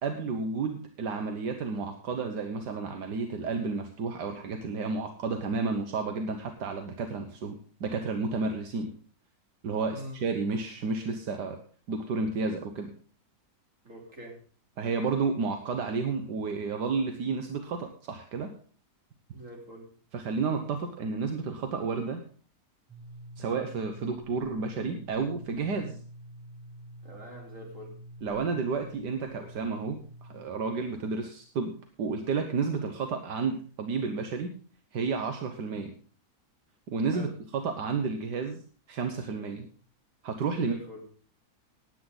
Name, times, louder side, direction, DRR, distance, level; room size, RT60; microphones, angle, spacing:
voice 1, 0.0-7.5 7.8-8.9 9.6-11.6 11.9-12.9 14.8-18.5 20.1-22.2 23.4-26.0 28.2-31.7 32.0-34.5 34.9-35.9 36.9-38.6 38.9-39.7 40.2-40.8, right 4 dB, 80° right, 6 dB, 1.8 m, -31 dB
voice 2, 13.8-14.4 19.3-19.9 27.0-27.9 37.1-37.3 40.6-41.0, equal, 45° right, 0 dB, 3.9 m, -44 dB
sound 1, 22.9-30.4, right 1 dB, 5° left, 3.9 m, -47 dB
18.0 x 9.3 x 3.9 m, 0.41 s
omnidirectional pair, 1.8 m